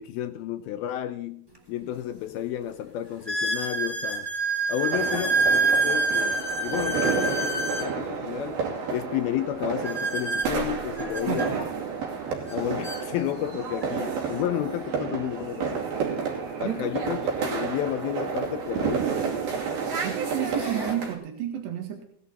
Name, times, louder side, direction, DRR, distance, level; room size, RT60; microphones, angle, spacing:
voice 1, 0.0-4.3 4.7-8.6 8.9-11.6 12.5-15.8 16.6-19.1, left 12 dB, 75° left, 9 dB, 2.3 m, -31 dB
sound 1, 1.5-1.6 2.3-2.4 3.3-7.9 9.8-11.5 12.5-12.6 12.8-13.0 13.8-13.9 16.1-16.2 18.3-18.4 19.1-19.4 20.0-20.9, right 3 dB, 10° right, 1.7 m, -27 dB
sound 2, 4.9-21.1, right 6 dB, 60° right, 4.3 m, -30 dB
voice 2, 11.3-11.7 16.6-16.9 20.0-22.0, right 10 dB, 85° right, 3 dB, 3.9 m, -31 dB
17.5 x 11.0 x 4.1 m, 0.66 s
omnidirectional pair, 4.8 m